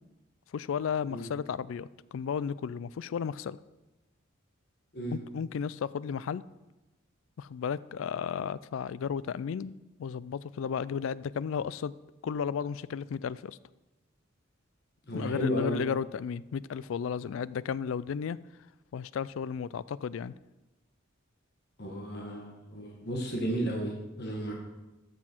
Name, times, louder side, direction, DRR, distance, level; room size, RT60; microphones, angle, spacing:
voice 1, 0.5-3.6 5.1-6.4 7.4-9.7 10.0-11.9 12.2-13.6 15.1-18.4 18.9-20.3, left 7 dB, 70° left, 19 dB, 0.3 m, -34 dB
voice 2, 15.1-15.8 21.8-24.5, equal, 50° left, -1 dB, 1.5 m, -33 dB
13.5 x 6.2 x 4.5 m, 1.0 s
head